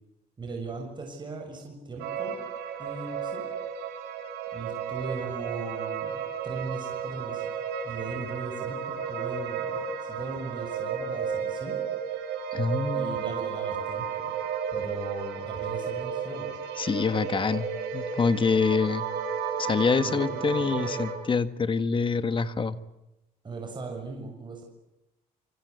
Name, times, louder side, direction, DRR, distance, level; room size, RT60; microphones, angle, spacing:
voice 1, 0.4-2.4 2.8-3.4 4.5-7.5 7.8-11.8 12.9-14.3 14.7-16.5 20.0-20.9 23.4-24.6, right 3 dB, 25° right, 1 dB, 7.0 m, -38 dB
sound 1, 2.0-21.1, right 7 dB, 80° right, 7.6 m, -33 dB
voice 2, 12.5-13.2 16.8-19.1 19.6-22.8, left 5 dB, 30° left, 12 dB, 1.6 m, -26 dB
27.5 x 25.5 x 8.2 m, 0.93 s
cardioid pair, 110°, 17 cm